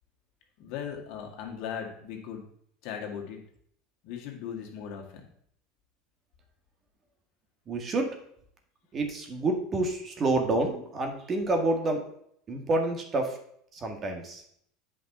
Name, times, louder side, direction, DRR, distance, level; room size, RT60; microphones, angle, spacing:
voice 1, 0.6-2.5 2.8-3.4 4.0-5.3, left 8 dB, 65° left, 1 dB, 1.9 m, -38 dB
voice 2, 7.7-8.1 8.9-12.0 12.5-13.4 13.7-14.4, right 2 dB, 30° right, 4 dB, 1.5 m, -28 dB
8.5 x 5.2 x 4.2 m, 0.68 s
supercardioid pair, 120°, 0 cm